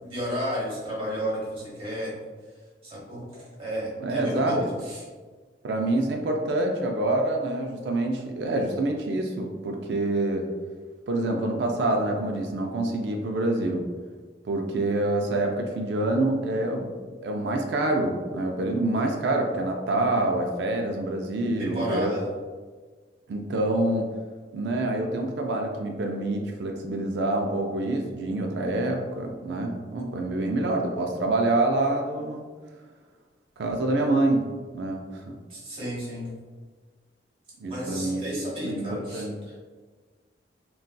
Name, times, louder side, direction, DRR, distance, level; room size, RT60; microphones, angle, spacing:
voice 1, 0.0-2.1 2.8-3.2 3.6-5.0 21.6-22.3 35.5-36.3 37.7-39.2, equal, 30° right, -5 dB, 1.0 m, -32 dB
voice 2, 4.0-4.6 5.6-10.5 11.1-13.8 14.4-16.9 17.2-22.1 23.3-24.1 24.5-32.4 33.6-34.4 34.7-35.3 37.6-38.2 38.6-39.4, right 2 dB, 70° right, 2 dB, 0.4 m, -26 dB
3.8 x 2.3 x 2.2 m, 1.4 s
head